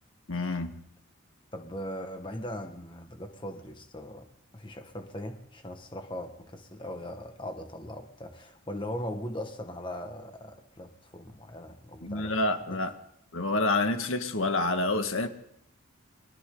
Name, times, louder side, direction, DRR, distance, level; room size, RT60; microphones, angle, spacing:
voice 1, 0.3-0.7 12.0-12.9 13.3-15.3, left 2 dB, 75° left, 6 dB, 1.8 m, -28 dB
voice 2, 1.5-4.3 4.5-12.4, equal, 25° left, 5 dB, 1.7 m, -39 dB
29.5 x 23.0 x 4.0 m, 0.75 s
head